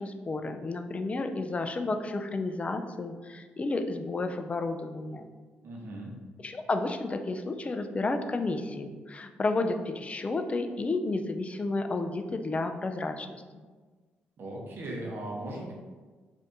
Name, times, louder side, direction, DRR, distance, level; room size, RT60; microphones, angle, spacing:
voice 1, 0.0-5.3 6.4-13.4, left 3 dB, 30° left, 7 dB, 0.3 m, -31 dB
voice 2, 5.6-6.1 14.4-15.7, right 1 dB, 60° right, -1 dB, 0.8 m, -38 dB
2.6 x 2.6 x 3.4 m, 1.4 s
supercardioid pair, 60°, 4 cm